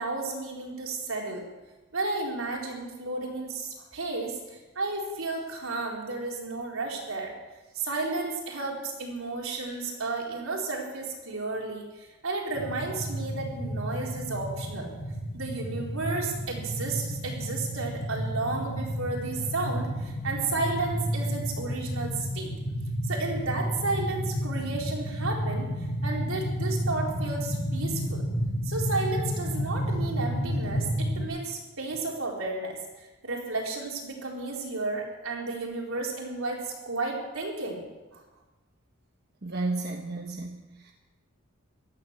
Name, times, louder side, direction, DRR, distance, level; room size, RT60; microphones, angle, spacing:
voice 1, 0.0-1.4 1.9-7.4 7.7-14.9 15.3-22.5 23.1-25.7 26.0-28.2 28.6-37.9 38.1-38.2, right 3 dB, 80° right, -1 dB, 3.8 m, -33 dB
sound 1, 12.5-31.2, equal, 50° left, 2.9 m, -31 dB
voice 2, 39.4-40.9, right 3 dB, 50° right, 2 dB, 1.2 m, -33 dB
15.5 x 12.5 x 6.5 m, 1.1 s
head